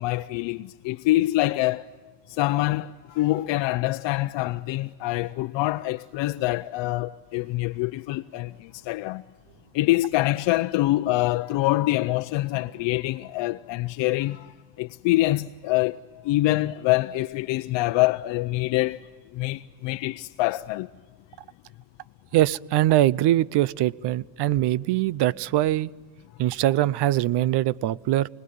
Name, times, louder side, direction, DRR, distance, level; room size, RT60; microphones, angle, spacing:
voice 1, 0.0-1.9 2.3-9.2 9.7-16.0 16.2-19.0 19.3-20.9, left 18 dB, 65° left, 0.8 m, -25 dB
voice 2, 22.3-25.9 26.4-28.3, right 14 dB, 60° right, 0.7 m, -22 dB
29.0 x 20.0 x 9.4 m
cardioid pair, 140°, 46 cm